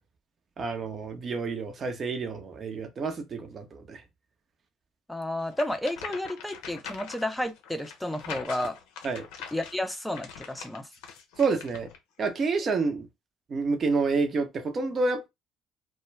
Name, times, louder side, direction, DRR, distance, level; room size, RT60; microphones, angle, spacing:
voice 1, 0.6-4.0 9.0-9.3 11.4-11.9 12.2-13.1 13.5-15.3, right 4 dB, 45° right, 0.7 m, -28 dB
voice 2, 5.1-8.8 9.5-10.9, left 1 dB, 5° left, 0.5 m, -31 dB
sound 1, 5.5-12.0, left 7 dB, 75° left, 0.5 m, -43 dB
2.2 x 2.2 x 3.1 m
hypercardioid pair, 60°, 0 cm